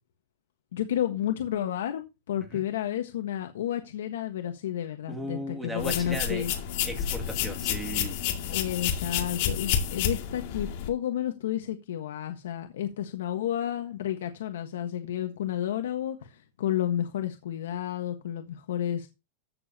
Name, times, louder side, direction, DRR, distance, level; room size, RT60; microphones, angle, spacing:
voice 1, 0.7-2.0 2.3-6.5 8.5-19.1, left 11 dB, 85° left, 1.3 m, -31 dB
voice 2, 5.1-6.4 6.8-8.2, right 1 dB, 5° right, 2.3 m, -36 dB
sound 1, 5.8-10.9, left 9 dB, 50° left, 2.3 m, -30 dB
14.5 x 7.1 x 2.8 m
supercardioid pair, 155°, 0 cm